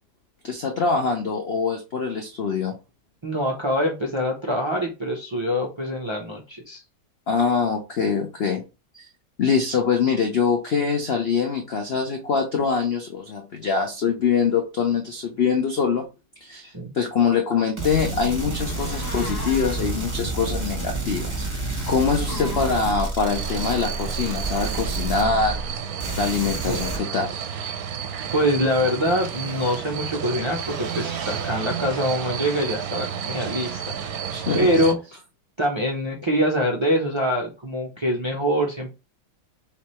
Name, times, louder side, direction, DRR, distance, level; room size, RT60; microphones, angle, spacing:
voice 1, 0.4-2.8 7.3-8.6 8.9-9.1 9.4-16.1 16.4-21.4 21.9-25.6 26.2-27.3 34.3-34.7, left 5 dB, 70° left, 0.5 m, -24 dB
voice 2, 3.2-6.8 16.7-16.9 26.7-26.9 28.3-34.2 34.5-35.0 35.6-38.9, equal, 45° right, 0.3 m, -24 dB
sound 1, 17.8-25.7 26.0-27.0, right 2 dB, 20° right, 1.2 m, -29 dB
sound 2, 18.6-20.0 21.8-23.2 29.0-29.8 30.6-31.6, left 2 dB, 40° left, 1.2 m, -39 dB
sound 3, 23.3-34.9, right 8 dB, 70° right, 1.0 m, -31 dB
3.5 x 3.1 x 4.2 m
omnidirectional pair, 1.8 m